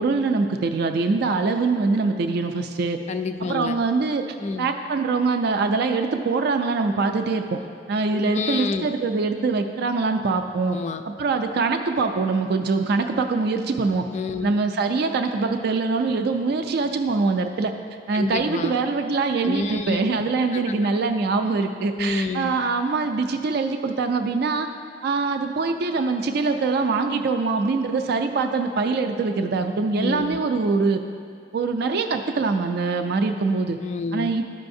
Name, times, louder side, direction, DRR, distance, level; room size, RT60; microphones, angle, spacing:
voice 1, 0.0-3.0 3.5-7.6 7.9-10.8 11.1-14.1 14.4-17.7 18.1-24.7 25.0-31.0 31.5-33.8 34.1-34.4, right 4 dB, 60° right, 6 dB, 0.4 m, -23 dB
voice 2, 3.1-3.8 4.4-4.7 8.1-8.9 10.7-11.1 14.1-14.5 18.1-18.8 19.4-20.1 20.5-20.9 22.0-22.5 30.0-30.4 33.8-34.3, left 4 dB, 40° left, 8 dB, 0.3 m, -28 dB
12.0 x 5.5 x 2.6 m, 2.2 s
head